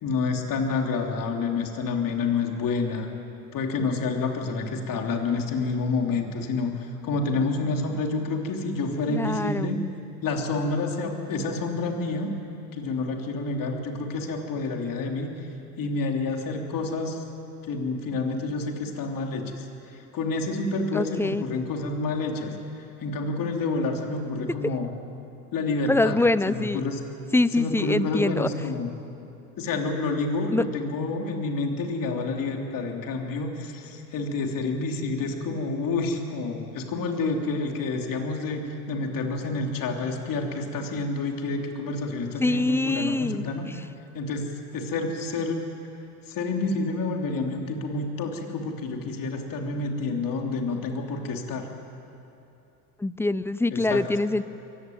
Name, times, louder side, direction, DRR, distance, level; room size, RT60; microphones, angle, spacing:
voice 1, 0.0-3.1 3.5-6.7 7.0-9.8 10.2-12.3 12.7-15.3 15.8-17.2 17.7-19.7 19.9-22.5 23.0-24.9 25.5-26.2 26.5-27.0 27.6-28.9 29.6-43.7 44.1-45.7 46.3-51.7 53.7-54.0, left 3 dB, 45° left, 2 dB, 3.2 m, -28 dB
voice 2, 9.1-9.7 20.9-21.4 25.9-26.8 27.3-28.5 30.5-30.6 42.4-43.5 53.0-54.4, left 2 dB, 5° left, 16 dB, 0.5 m, -24 dB
23.5 x 16.0 x 9.4 m, 2.8 s
hypercardioid pair, 85°, 44 cm